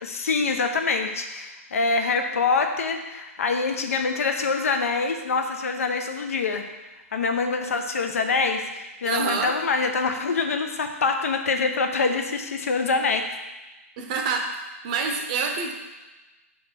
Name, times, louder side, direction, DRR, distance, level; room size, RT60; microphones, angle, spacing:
voice 1, 0.0-6.6 7.1-13.2, left 4 dB, 70° left, 5 dB, 0.8 m, -25 dB
voice 2, 9.0-9.6 14.0-15.7, right 5 dB, 30° right, 3 dB, 0.7 m, -27 dB
4.9 x 4.2 x 5.8 m, 1.1 s
hypercardioid pair, 165°, 8 cm